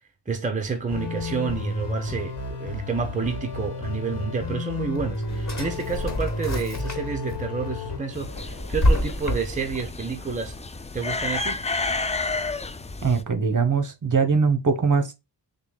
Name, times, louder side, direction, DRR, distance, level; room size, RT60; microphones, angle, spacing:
voice 1, 0.3-10.6 10.9-11.6, right 5 dB, 15° right, 0.8 m, -29 dB
sound 1, 0.9-8.0, left 2 dB, 70° left, 1.2 m, -32 dB
Drawer open or close, 4.8-7.3 7.8-9.8, left 1 dB, 40° left, 1.2 m, -27 dB
sound 2, 8.1-13.2, left 3 dB, 15° left, 0.3 m, -31 dB
voice 2, 13.0-15.1, right 5 dB, 45° right, 1.0 m, -22 dB
6.6 x 2.2 x 2.2 m
wide cardioid pair, 90°, 43 cm